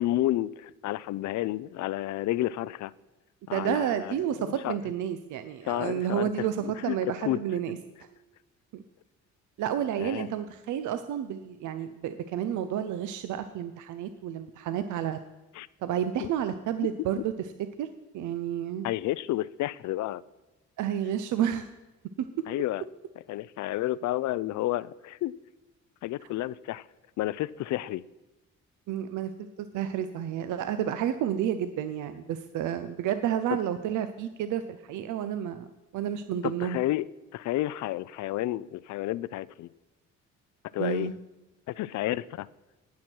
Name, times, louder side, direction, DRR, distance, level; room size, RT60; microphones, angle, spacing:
voice 1, 0.0-2.9 3.5-4.7 5.7-7.4 10.0-10.3 15.6-15.7 16.2-16.3 18.8-20.2 22.5-22.8 23.3-25.4 26.0-26.8 27.2-28.0 36.4-37.1 37.3-39.7 40.7-41.1 41.7-42.5, left 15 dB, 70° left, 20 dB, 0.4 m, -31 dB
voice 2, 3.5-7.8 8.7-8.8 9.6-15.2 15.8-17.3 17.8-17.9 18.1-18.9 20.8-21.7 22.2-22.5 28.9-29.3 29.6-35.7 35.9-36.8 40.8-41.1, right 10 dB, 80° right, 10 dB, 0.6 m, -30 dB
18.0 x 6.3 x 4.4 m, 1.1 s
cardioid pair, 90°, 30 cm